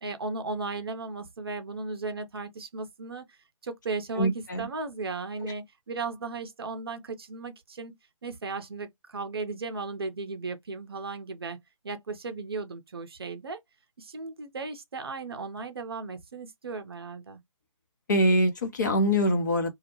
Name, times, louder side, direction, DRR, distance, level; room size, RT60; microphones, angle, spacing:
voice 1, 0.0-7.9 8.2-11.6 11.8-13.6 14.0-17.4, right 3 dB, 45° right, 0.6 m, -36 dB
voice 2, 4.2-4.7 18.1-19.7, equal, 35° left, 0.6 m, -24 dB
2.3 x 2.1 x 2.8 m
figure-of-eight pair, 140°, 17 cm